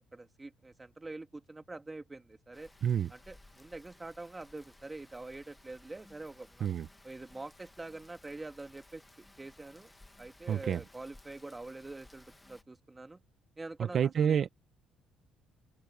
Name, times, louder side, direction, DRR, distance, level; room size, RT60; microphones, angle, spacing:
voice 1, 0.0-2.7 3.1-6.7 7.0-9.9 10.2-13.2 13.6-14.5, right 2 dB, 15° right, 1.8 m, -45 dB
Rain, 2.5-12.6, left 2 dB, 10° left, 1.9 m, -59 dB
voice 2, 10.5-10.8 13.9-14.5, right 8 dB, 45° right, 0.7 m, -28 dB
open air
cardioid pair, 130°, 0 cm